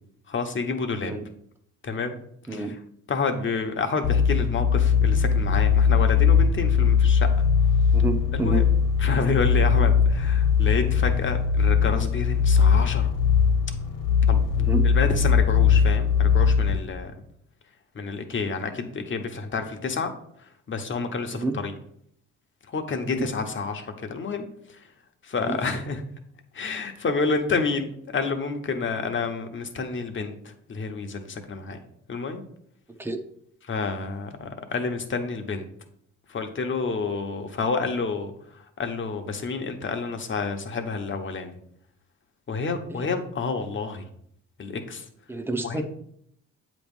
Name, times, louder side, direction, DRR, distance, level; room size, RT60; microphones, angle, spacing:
voice 1, 0.3-1.1 1.8-2.2 2.5-2.6 3.1-7.3 8.3-8.6 9.0-13.1 14.3-14.4 14.8-17.1 17.9-20.1 20.7-21.7 22.7-24.8 25.2-26.0 26.5-31.8 32.1-32.4 33.7-35.7 36.3-41.6 42.5-44.1 44.6-45.1 45.6-45.8, left 4 dB, 40° left, 6 dB, 1.0 m, -29 dB
voice 2, 2.5-2.8 7.9-8.6 14.6-14.9 21.3-21.6 23.0-23.3 25.4-25.6 33.0-33.2 42.9-43.0 45.3-45.8, right 3 dB, 5° right, 5 dB, 0.7 m, -29 dB
sound 1, 4.0-16.8, left 6 dB, 60° left, 1.3 m, -20 dB
7.8 x 3.1 x 5.3 m, 0.70 s
cardioid pair, 90°, 30 cm